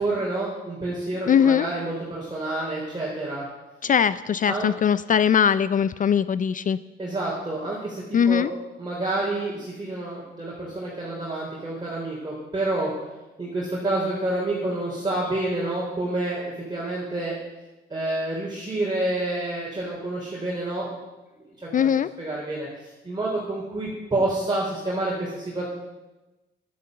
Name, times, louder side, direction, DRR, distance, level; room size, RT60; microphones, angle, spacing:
voice 1, 0.0-3.4 4.5-4.7 7.0-8.5 8.8-12.9 13.4-16.4 16.7-17.4 17.9-20.9 21.4-21.9 22.2-25.6, right 2 dB, 20° right, -5 dB, 4.0 m, -28 dB
voice 2, 1.3-1.7 3.8-6.8 8.1-8.5 21.7-22.1, left 8 dB, 40° left, 15 dB, 0.4 m, -20 dB
11.0 x 9.6 x 7.8 m, 1.1 s
cardioid pair, 90°, 20 cm